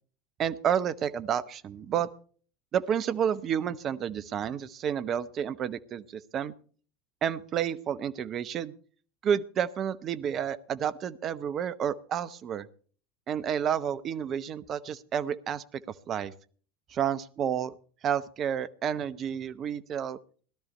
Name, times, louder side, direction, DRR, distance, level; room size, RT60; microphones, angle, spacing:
voice 1, 0.4-2.1 2.7-6.5 7.2-8.7 9.2-12.7 13.3-15.8 16.1-16.3 16.9-17.7 18.0-20.2, right 8 dB, 40° right, 13 dB, 0.9 m, -30 dB
17.5 x 12.5 x 4.3 m, 0.44 s
figure-of-eight pair, 75°, 0 cm